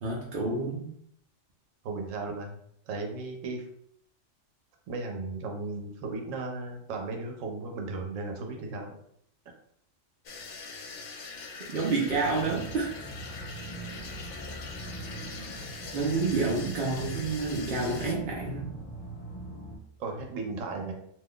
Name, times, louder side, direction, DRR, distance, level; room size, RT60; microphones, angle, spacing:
voice 1, 0.0-0.9 11.7-12.9 15.9-18.7, right 3 dB, 55° right, -3 dB, 0.6 m, -29 dB
voice 2, 1.8-2.6 2.9-3.6 4.9-8.9 20.0-20.9, right 3 dB, 90° right, 2 dB, 1.0 m, -35 dB
sound 1, 10.3-18.1, left 4 dB, 70° left, 0.9 m, -42 dB
sound 2, 12.0-19.8, right 2 dB, 30° left, 1.1 m, -42 dB
2.6 x 2.3 x 3.5 m, 0.68 s
omnidirectional pair, 1.3 m